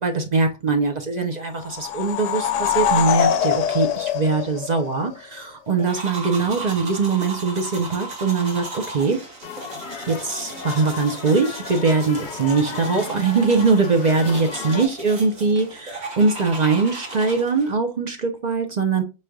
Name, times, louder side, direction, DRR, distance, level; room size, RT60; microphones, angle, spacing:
voice 1, 0.0-9.2 10.0-19.0, right 4 dB, 45° right, 0.6 m, -22 dB
sound 1, 1.6-5.1, left 9 dB, 75° left, 0.9 m, -23 dB
Brossage de dents, 5.8-17.8, right 3 dB, 90° right, 1.8 m, -36 dB
sound 2, 9.4-14.9, left 6 dB, 50° left, 0.7 m, -35 dB
5.5 x 3.2 x 2.3 m
omnidirectional pair, 1.3 m